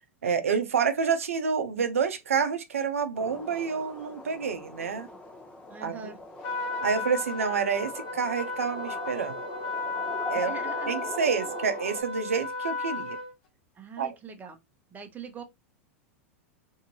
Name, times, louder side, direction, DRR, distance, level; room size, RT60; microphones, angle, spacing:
voice 1, 0.2-5.1 5.8-6.0 6.8-9.3 10.3-10.5 10.9-13.2 14.0-14.1, right 6 dB, 80° right, 0.5 m, -28 dB
sound 1, 3.1-12.0, left 1 dB, 15° left, 0.8 m, -41 dB
voice 2, 5.7-6.2 10.3-11.3 13.8-14.6 14.9-15.4, right 6 dB, 20° right, 0.8 m, -42 dB
Trumpet, 6.4-13.3, left 3 dB, 50° left, 1.1 m, -34 dB
2.7 x 2.5 x 2.8 m
hypercardioid pair, 95°, 7 cm